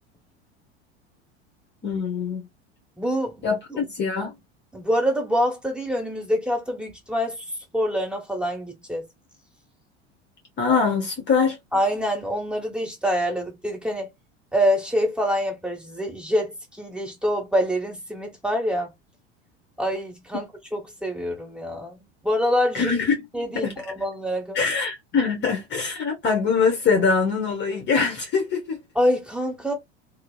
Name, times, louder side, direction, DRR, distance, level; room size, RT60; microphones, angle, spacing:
voice 1, 1.8-2.4 3.4-4.3 10.6-11.6 22.7-23.3 23.5-23.8 24.5-28.8, left 5 dB, 35° left, 0.9 m, -23 dB
voice 2, 3.0-3.5 4.7-7.4 7.7-9.1 11.7-14.1 14.5-18.9 19.8-20.4 20.7-22.0 22.2-22.9 23.3-24.6 28.9-29.7, equal, 5° right, 1.4 m, -25 dB
2.7 x 2.0 x 2.2 m
hypercardioid pair, 85°, 33 cm